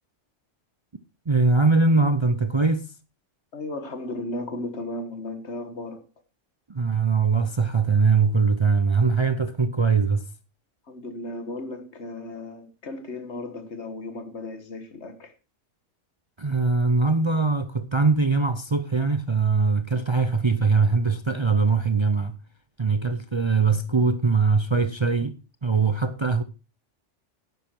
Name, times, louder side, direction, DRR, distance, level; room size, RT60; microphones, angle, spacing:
voice 1, 1.3-2.8 6.7-10.2 16.4-22.4 22.8-25.4 25.6-26.4, right 4 dB, 35° right, 0.5 m, -21 dB
voice 2, 3.5-6.0 10.9-15.3, left 2 dB, 65° left, 1.8 m, -35 dB
11.0 x 9.3 x 4.5 m
omnidirectional pair, 1.3 m